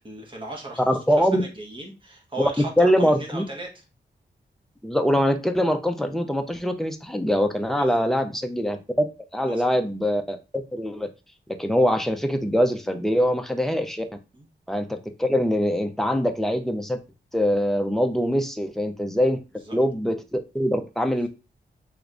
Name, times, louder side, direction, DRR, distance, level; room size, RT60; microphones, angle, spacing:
voice 1, 0.0-3.7 7.8-8.1 9.4-9.9 14.3-14.5 19.7-19.8, right 2 dB, 25° right, 0 dB, 1.1 m, -37 dB
voice 2, 0.9-1.4 2.8-3.4 4.8-9.1 9.3-11.1 11.6-14.0 14.7-17.0 17.3-19.4 19.7-21.3, equal, ahead, 5 dB, 0.5 m, -23 dB
3.4 x 3.1 x 2.5 m, 0.29 s
wide cardioid pair, 115°, 19 cm